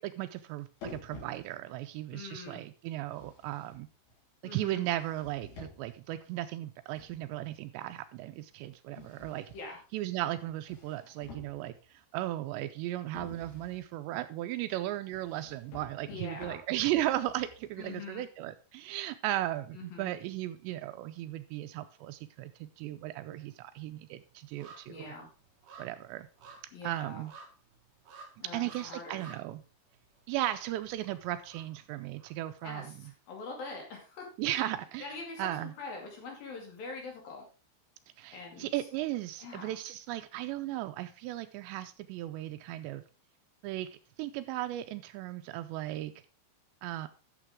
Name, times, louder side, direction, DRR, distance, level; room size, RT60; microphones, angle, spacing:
voice 1, 0.0-3.9 4.5-9.5 9.9-25.1 25.8-26.3 26.8-27.3 28.5-29.6 30.3-33.0 34.4-35.1 35.4-35.7 38.2-43.0 43.6-46.1 46.8-47.1, right 15 dB, 85° right, 2.5 m, -36 dB
sound 1, 0.8-1.8 3.0-4.2 4.9-6.1 7.0-7.4 8.9-9.8 10.5-12.0 13.1-13.9 15.1-17.9, left 3 dB, 85° left, 5.6 m, -51 dB
voice 2, 2.1-2.6 4.4-4.8 9.5-9.8 16.1-16.6 17.8-18.2 19.7-20.1 24.9-25.3 26.7-27.3 28.4-29.2 32.6-34.3 34.6-34.7 35.0-37.4 38.3-38.7 39.4-39.7, left 3 dB, 55° left, 3.7 m, -44 dB
sound 2, 21.6-22.4 22.7-32.7 33.0-33.1, right 4 dB, 50° right, 2.9 m, -55 dB
12.0 x 6.7 x 3.6 m
omnidirectional pair, 5.5 m